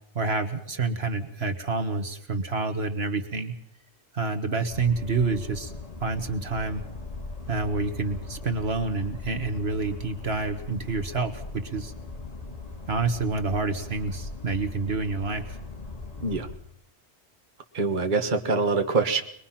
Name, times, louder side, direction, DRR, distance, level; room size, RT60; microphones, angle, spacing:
voice 1, 0.1-3.5 4.1-5.7 6.0-6.8 7.5-11.9 12.9-15.5, right 3 dB, 60° right, 8 dB, 1.7 m, -28 dB
sound 1, 4.7-16.6, left 3 dB, 35° left, 2.5 m, -39 dB
voice 2, 17.7-19.2, right 4 dB, 45° right, 5 dB, 1.5 m, -24 dB
24.5 x 21.5 x 5.8 m, 0.65 s
omnidirectional pair, 1.2 m